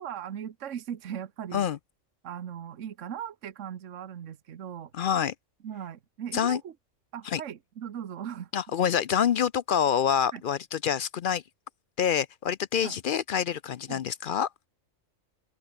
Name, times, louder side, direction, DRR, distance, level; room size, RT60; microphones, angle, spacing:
voice 1, 0.0-1.6 2.2-4.9 5.6-6.7 7.1-8.5 10.3-10.4 12.8-13.0 13.9-14.0, right 9 dB, 70° right, 1.4 m, -38 dB
voice 2, 4.9-5.3 6.3-6.6 7.3-7.4 8.5-11.4 12.0-14.5, left 8 dB, 60° left, 0.6 m, -26 dB
open air
omnidirectional pair, 1.3 m